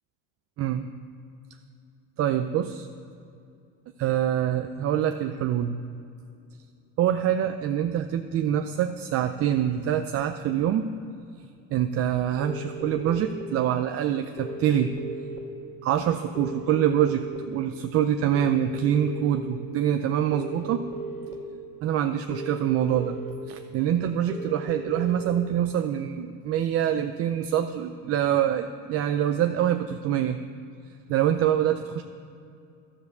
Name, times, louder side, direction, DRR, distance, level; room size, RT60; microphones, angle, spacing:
voice 1, 2.2-2.9 4.0-5.7 7.0-10.9 11.7-14.9 15.8-20.8 21.8-23.2 23.5-30.4 31.1-32.0, right 10 dB, 40° right, 7 dB, 0.5 m, -25 dB
sound 1, 12.4-13.4 14.4-15.4 16.4-17.4 18.3-19.4 20.3-21.3 22.3-23.3 24.3-25.3, right 2 dB, 20° left, 2.3 m, -36 dB
13.0 x 7.1 x 6.7 m, 2.5 s
cardioid pair, 145°, 35 cm